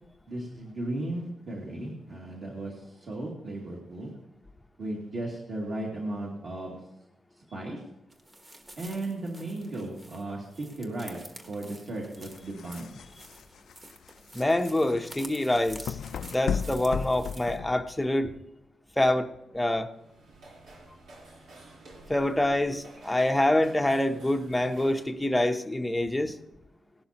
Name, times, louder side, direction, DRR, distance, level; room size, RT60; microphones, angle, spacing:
voice 1, 0.3-4.1 4.8-6.8 7.5-7.8 8.8-10.5 10.7-13.0, right 1 dB, 50° right, -4 dB, 2.4 m, -36 dB
sound 1, 8.1-17.6, right 1 dB, 20° right, 1.3 m, -49 dB
sound 2, 12.2-18.1, left 7 dB, 70° left, 0.4 m, -36 dB
voice 2, 14.3-16.0 16.3-18.3 19.0-19.3 19.5-19.9 22.1-26.3, left 1 dB, 5° left, 6 dB, 0.7 m, -26 dB
sound 3, 19.9-25.2, right 2 dB, 80° right, 3.6 m, -51 dB
17.5 x 12.0 x 2.9 m, 0.90 s
wide cardioid pair, 170°, 0 cm